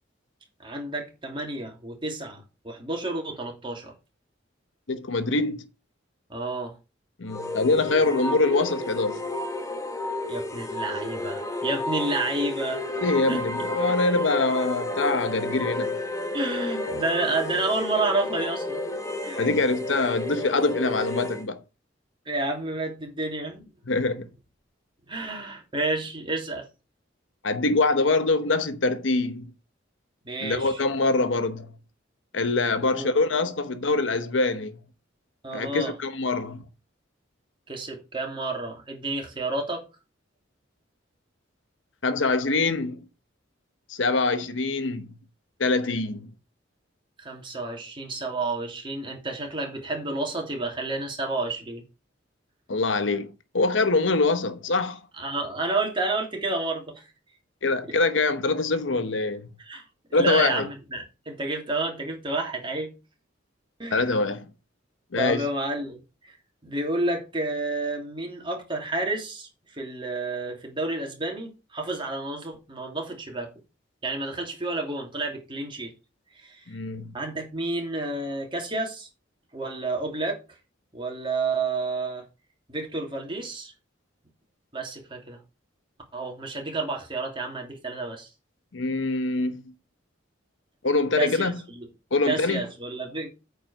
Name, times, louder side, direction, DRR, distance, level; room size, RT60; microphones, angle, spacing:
voice 1, 0.6-3.9 6.3-6.7 10.3-12.8 13.3-13.4 16.3-18.8 19.2-19.5 22.2-23.6 25.1-26.7 30.2-30.8 32.8-33.1 35.4-35.9 37.7-39.8 47.2-51.8 55.2-57.1 59.7-59.8 60.2-62.9 63.8-64.1 65.2-66.0 66.6-73.5 74.0-75.9 76.3-76.6 77.1-79.1 79.5-80.4 80.9-82.2 82.7-83.7 84.7-85.4 86.1-88.3 91.2-91.5 91.8-91.9 92.2-93.3, right 2 dB, 25° right, 3.0 m, -30 dB
voice 2, 4.9-5.7 7.2-9.2 12.9-16.0 19.4-21.6 23.9-24.3 27.4-29.5 30.4-31.7 32.3-34.8 35.5-36.6 42.0-43.0 43.9-45.1 45.6-46.3 52.7-55.0 57.6-59.5 60.1-60.7 63.9-64.5 65.1-65.5 76.7-77.1 88.7-89.6 90.8-91.6 92.1-92.6, left 3 dB, 75° left, 1.0 m, -24 dB
sound 1, 7.3-21.5, left 2 dB, 15° left, 1.3 m, -31 dB
8.8 x 5.1 x 6.3 m
head